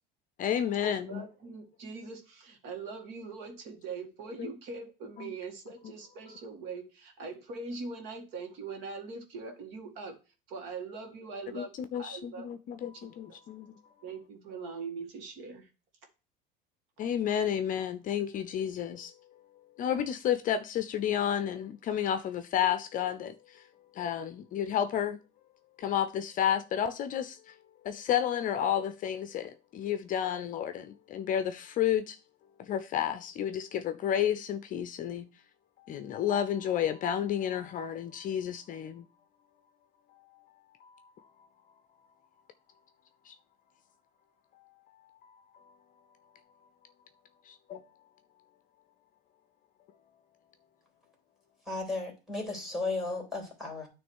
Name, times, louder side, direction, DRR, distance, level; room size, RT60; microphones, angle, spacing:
voice 1, 0.4-1.2 4.4-4.5 5.2-5.3 11.5-13.8 17.0-19.1 19.8-23.6 24.0-25.2 25.8-27.5 27.8-32.2 32.6-35.3 35.9-39.1 40.8-41.1 43.3-43.4 45.2-45.6 47.5-47.8, left 9 dB, 40° left, 0.6 m, -31 dB
voice 2, 1.0-10.2 10.5-13.4 14.0-15.7, right 4 dB, 60° right, 1.9 m, -42 dB
voice 3, 51.7-53.9, left 3 dB, ahead, 3.0 m, -34 dB
9.0 x 3.2 x 6.2 m
supercardioid pair, 125°, 21 cm